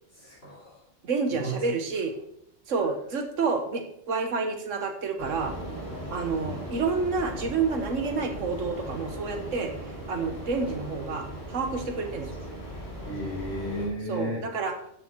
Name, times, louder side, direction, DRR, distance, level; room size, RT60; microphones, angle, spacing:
voice 1, 0.1-0.8 1.3-1.6 6.4-6.7 13.0-14.4, equal, 55° left, -8 dB, 4.5 m, -34 dB
voice 2, 1.0-2.1 2.7-5.5 6.1-9.7 10.1-12.4 14.1-14.9, right 4 dB, 85° right, 5 dB, 1.6 m, -29 dB
sound 1, 5.2-13.9, right 1 dB, 15° left, 3.5 m, -38 dB
13.0 x 6.9 x 4.6 m, 0.74 s
omnidirectional pair, 1.3 m